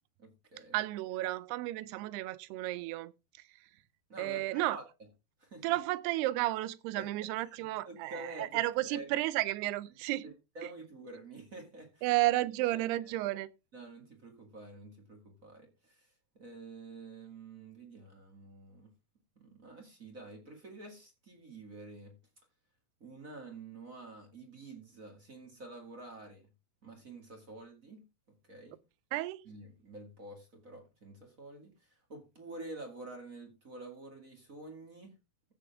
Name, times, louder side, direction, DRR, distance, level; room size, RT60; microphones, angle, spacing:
voice 1, 0.2-0.8 4.1-4.8 5.4-5.8 6.9-9.2 10.2-12.1 12.7-13.4 13.7-18.9 19.4-22.1 23.0-26.5 26.8-28.8 29.4-35.1, right 2 dB, 30° right, 1.7 m, -49 dB
voice 2, 0.7-3.1 4.2-4.8 5.6-10.3 12.0-13.5 29.1-29.4, right 17 dB, 90° right, 2.7 m, -32 dB
15.5 x 7.0 x 3.5 m
omnidirectional pair, 4.5 m